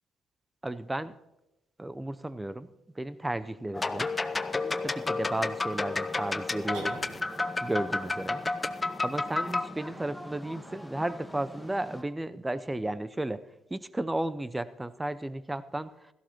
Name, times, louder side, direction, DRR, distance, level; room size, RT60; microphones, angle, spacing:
voice 1, 0.6-1.1 1.8-2.7 3.0-4.1 4.8-7.0 7.6-8.4 9.0-13.4 13.7-15.9, right 1 dB, 15° right, 15 dB, 0.7 m, -33 dB
sound 1, 3.7-9.7, left 3 dB, 25° left, 0.7 m, -31 dB
sound 2, 3.7-12.0, left 1 dB, 5° left, 1.5 m, -45 dB
sound 3, 6.7-7.6, right 2 dB, 70° right, 3.1 m, -43 dB
16.5 x 14.0 x 3.0 m, 0.92 s
hypercardioid pair, 45°, 0 cm